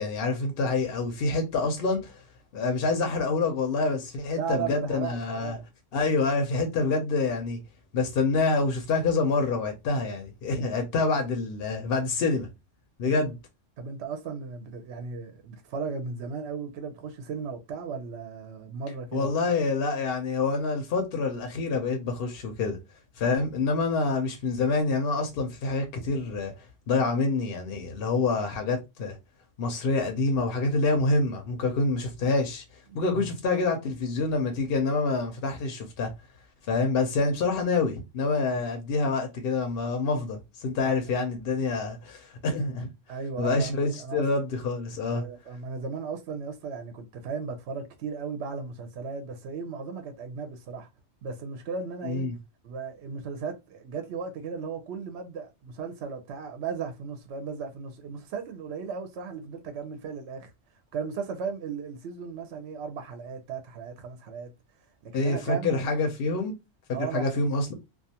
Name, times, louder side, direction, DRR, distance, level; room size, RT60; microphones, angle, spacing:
voice 1, 0.0-2.2 2.5-5.6 5.9-7.6 7.9-12.5 13.0-13.4 19.1-22.8 23.2-26.5 26.9-29.2 29.6-32.6 32.9-36.1 36.7-42.9 43.4-45.2 52.0-52.4 65.1-66.5 67.0-67.7, left 3 dB, 60° left, 0.7 m, -27 dB
voice 2, 4.3-5.6 13.1-13.3 13.8-19.3 32.9-33.3 38.5-38.6 40.9-41.0 43.1-44.3 45.1-50.9 51.2-52.3 52.6-60.5 60.9-64.5 65.0-65.8 66.9-67.4, right 5 dB, 65° right, 0.8 m, -36 dB
2.3 x 2.3 x 2.7 m
omnidirectional pair, 1.3 m